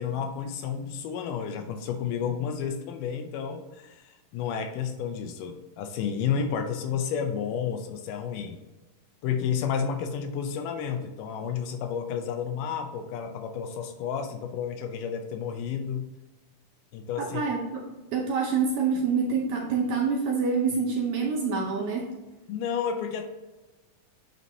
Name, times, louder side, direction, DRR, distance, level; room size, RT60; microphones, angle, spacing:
voice 1, 0.0-8.6 9.2-16.1 16.9-17.4 22.5-23.2, left 7 dB, 80° left, 6 dB, 2.1 m, -31 dB
voice 2, 17.2-22.1, right 5 dB, 75° right, 0 dB, 1.8 m, -27 dB
9.3 x 4.2 x 2.7 m, 1.1 s
omnidirectional pair, 4.0 m